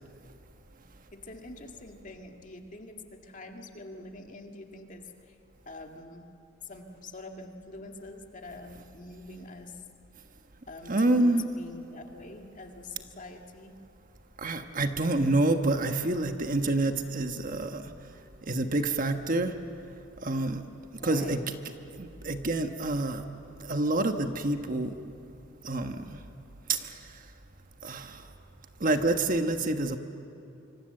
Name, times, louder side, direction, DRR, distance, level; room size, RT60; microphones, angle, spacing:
voice 1, 1.1-5.4 5.7-6.3 6.6-9.8 10.7-13.7 21.0-21.4, left 2 dB, 40° left, 3 dB, 2.0 m, -45 dB
voice 2, 10.9-11.4 14.4-17.8 18.5-19.5 20.2-20.6 21.0-21.4 21.9-23.2 23.6-24.9 25.6-26.2 26.7-26.9 27.8-28.2 28.8-30.0, right 2 dB, 45° right, 7 dB, 1.3 m, -27 dB
26.0 x 25.5 x 7.8 m, 2.7 s
head